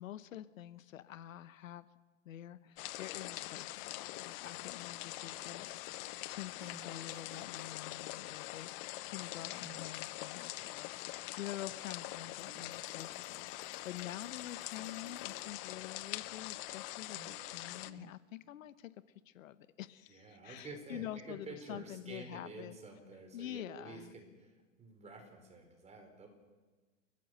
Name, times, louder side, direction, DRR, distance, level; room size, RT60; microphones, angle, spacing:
voice 1, 0.0-1.9 2.2-8.7 9.0-18.9 19.3-22.8 23.3-24.1, left 12 dB, 85° left, 14 dB, 1.1 m, -47 dB
sound 1, 2.8-17.9, left 18 dB, 45° left, 0.9 m, -44 dB
sound 2, 6.2-7.9 9.6-10.1 12.5-12.7 13.0-13.1 14.8-15.6 17.1-17.6 17.9-18.1 18.4-18.5 20.9-21.3 21.6-22.7, right 13 dB, 50° right, 1.2 m, -57 dB
Bell, 12.4-15.6, left 4 dB, 10° left, 4.9 m, -69 dB
voice 2, 20.1-26.3, right 3 dB, 15° right, 4 dB, 4.7 m, -50 dB
29.5 x 14.0 x 6.6 m, 1.3 s
hypercardioid pair, 135°, 39 cm